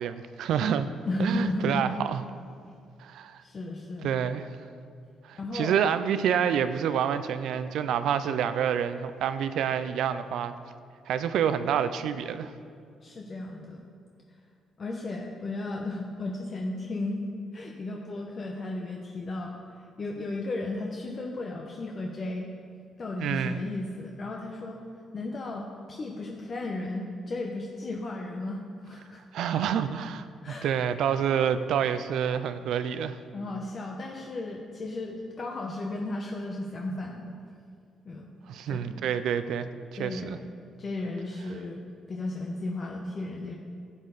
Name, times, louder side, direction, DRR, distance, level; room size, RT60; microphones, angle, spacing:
voice 1, 0.0-0.9 1.2-2.2 3.0-3.4 4.0-4.5 5.3-10.5 11.1-12.5 23.2-23.6 29.3-33.2 38.5-39.7 40.0-40.4, right 8 dB, 80° right, 12 dB, 0.5 m, -28 dB
voice 2, 1.0-1.9 3.4-4.1 5.4-5.8 13.0-13.8 14.8-17.2 17.5-22.5 23.0-24.8 25.1-29.2 29.8-29.9 30.4-30.7 33.3-37.4 38.0-38.3 38.7-39.0 39.9-40.5 40.8-41.8 42.1-43.6, left 2 dB, 45° left, 0 dB, 1.0 m, -34 dB
11.0 x 8.5 x 4.1 m, 2.3 s
cardioid pair, 90°, 0 cm